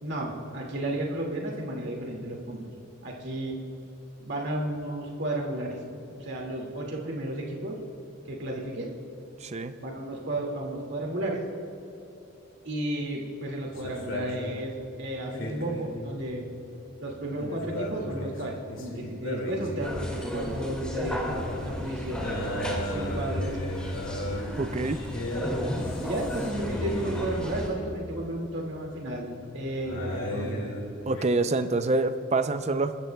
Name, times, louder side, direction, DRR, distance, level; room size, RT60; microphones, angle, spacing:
voice 1, 0.0-2.7 3.0-3.6 4.2-5.8 6.1-7.8 8.3-8.9 9.8-11.4 12.6-16.5 17.0-22.4 22.8-23.5 26.0-30.7, right 1 dB, 60° right, -1 dB, 2.2 m, -33 dB
voice 2, 9.4-9.7 24.6-25.0 31.1-33.0, right 3 dB, 35° right, 10 dB, 0.5 m, -26 dB
sound 1, 13.7-28.2 29.2-31.3, equal, 70° left, 2.3 m, -36 dB
sound 2, 19.8-27.7, left 1 dB, 5° left, 2.0 m, -34 dB
28.0 x 13.5 x 2.3 m, 2.9 s
head